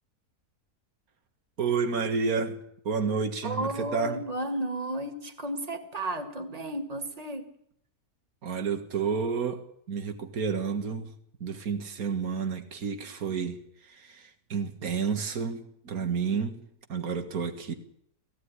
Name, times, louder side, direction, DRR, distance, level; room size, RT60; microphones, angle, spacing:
voice 1, 1.6-2.6 2.8-4.2 8.4-11.1 11.4-13.6 13.8-16.6 16.9-17.7, right 5 dB, 70° right, 2.2 m, -30 dB
voice 2, 3.4-7.5, right 1 dB, 25° right, 2.0 m, -33 dB
16.5 x 16.5 x 9.8 m
omnidirectional pair, 1.6 m